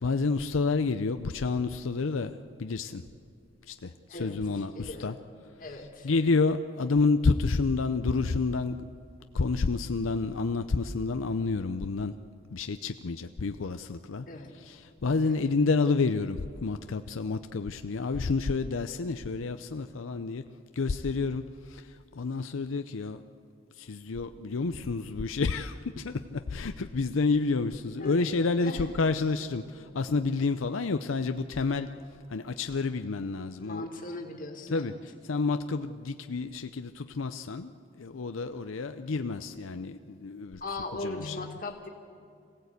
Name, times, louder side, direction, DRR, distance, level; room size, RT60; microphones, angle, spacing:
voice 1, 0.0-3.0 3.7-5.2 5.6-8.9 9.3-12.2 12.5-20.4 20.7-23.2 23.7-31.9 32.3-34.2 34.7-37.7 38.0-41.6, left 4 dB, 90° left, 9 dB, 0.6 m, -29 dB
voice 2, 4.8-5.1 5.6-6.1 14.3-14.6 15.3-15.4 28.0-28.9 33.6-34.9 40.6-41.9, left 2 dB, 45° left, 2 dB, 2.2 m, -39 dB
26.0 x 16.5 x 8.2 m, 2.4 s
head